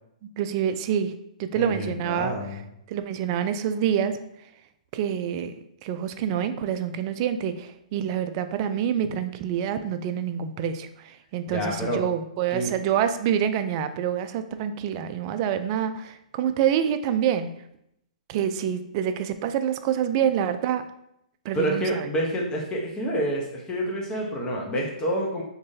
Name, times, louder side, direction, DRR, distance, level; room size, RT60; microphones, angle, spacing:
voice 1, 0.4-1.1 1.4-2.3 2.9-4.2 4.9-5.5 5.8-17.5 18.3-20.8 21.4-21.9, right 9 dB, 40° right, 10 dB, 0.3 m, -26 dB
voice 2, 1.5-2.6 11.5-12.0 12.5-12.7 21.5-25.4, equal, 20° left, -2 dB, 0.9 m, -28 dB
3.7 x 3.1 x 2.7 m, 0.78 s
hypercardioid pair, 135°, 4 cm